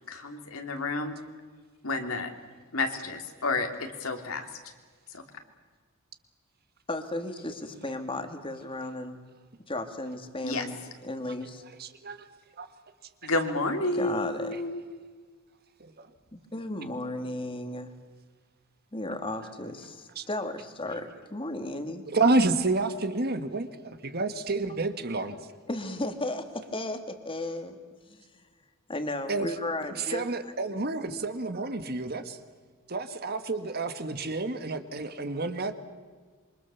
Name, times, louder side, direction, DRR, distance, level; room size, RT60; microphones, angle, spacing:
voice 1, 0.1-1.1 1.8-2.3 2.7-4.5 5.1-5.2 10.4-10.6 13.2-14.8, left 2 dB, 75° left, 5 dB, 3.0 m, -30 dB
voice 2, 6.9-9.2 9.7-10.8 11.0-11.6 13.9-14.6 16.3-17.9 18.9-22.1 25.7-27.8 28.1-28.2 28.9-30.2, left 1 dB, 25° left, 7 dB, 2.2 m, -34 dB
voice 3, 11.8-12.3 12.6-12.7 15.8-16.1 20.1-20.2 22.1-25.4 29.3-29.5 29.9-32.4 32.9-35.7, right 3 dB, 45° right, 9 dB, 1.6 m, -29 dB
27.0 x 24.5 x 7.1 m, 1.5 s
head